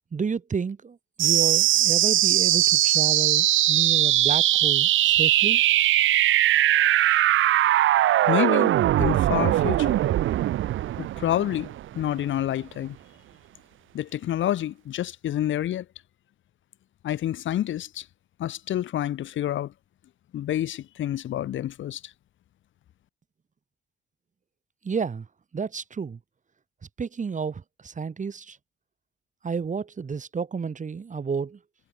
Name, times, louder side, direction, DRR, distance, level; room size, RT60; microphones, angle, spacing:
voice 1, 0.1-5.6 24.8-25.3 25.5-26.2 27.0-28.6 29.4-31.6, right 5 dB, 40° right, 5.0 m, -31 dB
sound 1, 1.2-12.2, right 13 dB, 80° right, 2.2 m, -21 dB
voice 2, 8.3-10.0 11.0-13.0 13.9-15.8 17.0-18.0 18.4-19.7 20.3-22.1, left 12 dB, 75° left, 4.9 m, -28 dB
cardioid pair, 90°, 20 cm